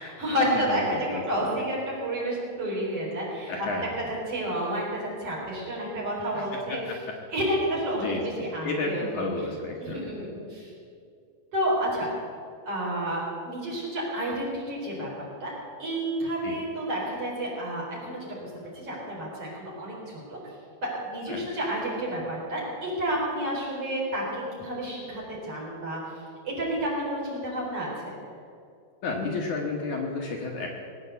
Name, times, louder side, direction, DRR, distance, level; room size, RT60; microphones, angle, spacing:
voice 1, 0.0-3.5 4.3-6.8 7.3-9.3 9.8-10.7 11.5-12.1 12.6-15.5 15.8-18.5 18.7-20.4 20.8-26.0 26.4-28.1, right 1 dB, 40° right, -4 dB, 5.1 m, -30 dB
voice 2, 0.5-1.7 3.5-3.9 6.3-7.0 8.0-10.1 16.4-16.6 21.3-21.4 29.0-30.7, left 3 dB, 60° left, 0 dB, 2.5 m, -32 dB
19.5 x 8.9 x 8.0 m, 2.4 s
omnidirectional pair, 4.4 m